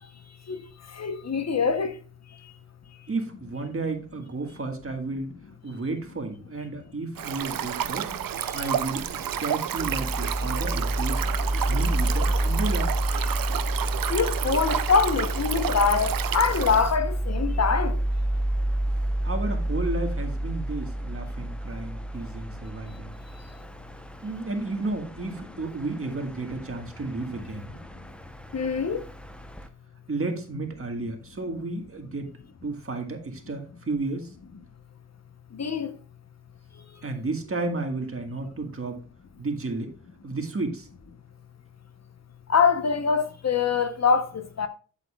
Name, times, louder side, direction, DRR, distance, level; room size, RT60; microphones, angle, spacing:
voice 1, 1.0-2.0 14.1-18.0 28.5-29.0 35.5-35.9 42.5-44.7, left 5 dB, 50° left, 0.9 m, -24 dB
voice 2, 3.1-5.3 5.6-8.2 8.5-11.2 11.7-12.9 19.2-23.1 24.2-27.8 30.1-32.3 32.6-34.3 37.0-39.0 39.4-39.9 40.2-40.9, right 3 dB, 40° right, 1.6 m, -32 dB
Stream, 7.2-17.0, right 10 dB, 85° right, 0.6 m, -30 dB
sound 1, 9.8-29.7, right 1 dB, 5° left, 0.7 m, -30 dB
8.3 x 8.1 x 2.3 m
wide cardioid pair, 80°, 33 cm